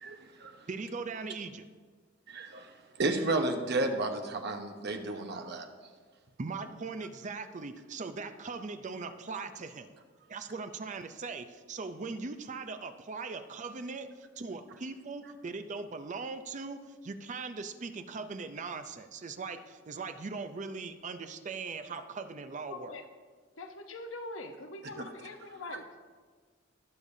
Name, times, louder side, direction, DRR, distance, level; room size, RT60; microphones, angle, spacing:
voice 1, 0.0-0.6 2.3-5.7, right 2 dB, 55° right, 5 dB, 1.0 m, -32 dB
voice 2, 0.7-1.7 6.4-9.9 10.3-22.9, right 4 dB, 40° right, 10 dB, 0.5 m, -40 dB
voice 3, 22.7-23.0 23.6-26.1, left 2 dB, 80° left, 5 dB, 0.9 m, -43 dB
19.0 x 6.7 x 2.7 m, 1.5 s
head